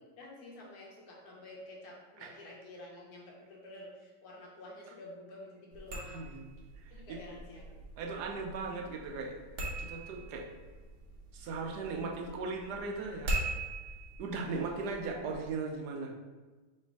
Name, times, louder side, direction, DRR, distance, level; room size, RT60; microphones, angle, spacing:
voice 1, 0.0-6.3 6.9-7.8 14.6-15.0, left 1 dB, 65° left, -2 dB, 1.4 m, -50 dB
sound 1, 5.7-15.5, right 2 dB, 55° right, 1.0 m, -42 dB
voice 2, 6.1-6.4 6.8-7.2 8.0-9.3 9.8-10.4 11.3-13.3 14.2-16.1, right 4 dB, 80° right, 1 dB, 1.2 m, -38 dB
3.3 x 3.1 x 4.6 m, 1.3 s
omnidirectional pair, 1.8 m